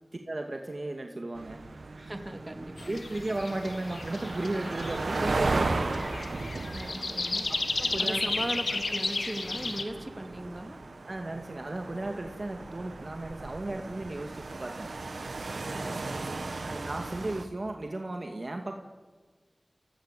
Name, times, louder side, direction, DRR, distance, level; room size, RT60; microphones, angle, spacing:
voice 1, 0.3-1.6 2.9-5.9 7.8-8.2 11.1-14.9 16.6-18.8, right 2 dB, 55° right, 3 dB, 2.2 m, -35 dB
sound 1, 1.3-17.4, right 3 dB, 90° right, 1.6 m, -36 dB
voice 2, 2.0-2.9 5.6-5.9 6.7-7.5 8.0-10.8 15.7-16.6, right 1 dB, 30° right, 5 dB, 2.8 m, -39 dB
sound 2, 2.8-9.8, left 3 dB, 80° left, 1.5 m, -34 dB
29.5 x 17.5 x 8.4 m, 1.4 s
wide cardioid pair, 40°, 0 cm